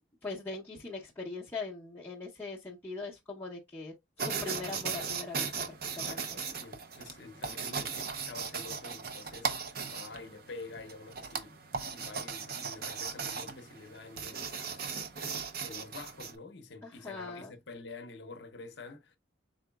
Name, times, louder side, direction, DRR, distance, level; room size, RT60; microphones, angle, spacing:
voice 1, 0.2-5.5 5.9-6.2 16.8-17.5, left 3 dB, 10° left, 0.7 m, -41 dB
sound 1, 4.2-16.4, right 5 dB, 50° right, 0.6 m, -38 dB
voice 2, 5.9-11.6 11.9-14.8 15.2-19.2, left 3 dB, 60° left, 0.7 m, -48 dB
4.8 x 3.8 x 2.2 m
head